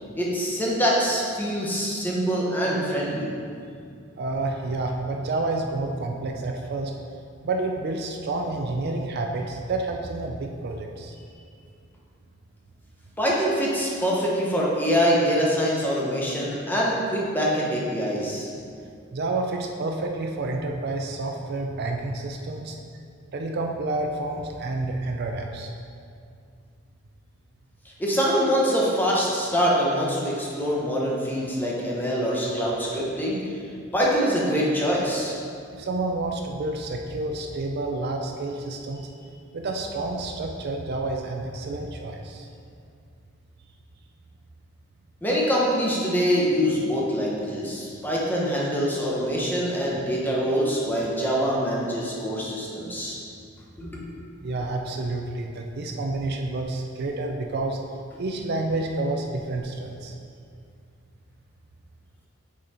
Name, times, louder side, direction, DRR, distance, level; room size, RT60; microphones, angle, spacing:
voice 1, 0.2-3.3 13.2-18.5 28.0-33.5 33.9-35.4 45.2-53.2 53.8-54.2, equal, 10° left, -4 dB, 1.0 m, -24 dB
voice 2, 4.2-6.9 7.4-11.1 19.1-22.8 23.3-25.7 35.7-39.1 39.5-42.5 54.4-57.8 58.2-60.1, right 2 dB, 50° right, 3 dB, 0.4 m, -29 dB
6.2 x 4.2 x 4.3 m, 2.3 s
head